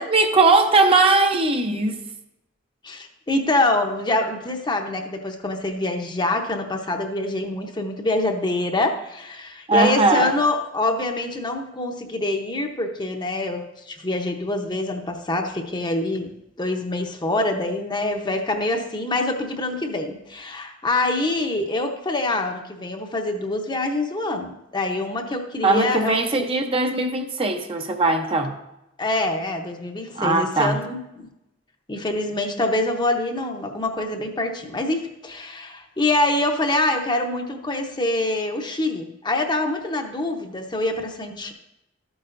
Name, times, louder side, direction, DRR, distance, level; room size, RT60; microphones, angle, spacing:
voice 1, 0.0-2.0 9.7-10.4 25.6-28.6 30.2-30.8, right 3 dB, 30° right, 5 dB, 0.7 m, -19 dB
voice 2, 2.8-16.3 16.6-26.1 29.0-31.3 31.9-41.5, left 2 dB, 25° left, 4 dB, 0.8 m, -25 dB
12.5 x 8.8 x 2.6 m, 0.89 s
head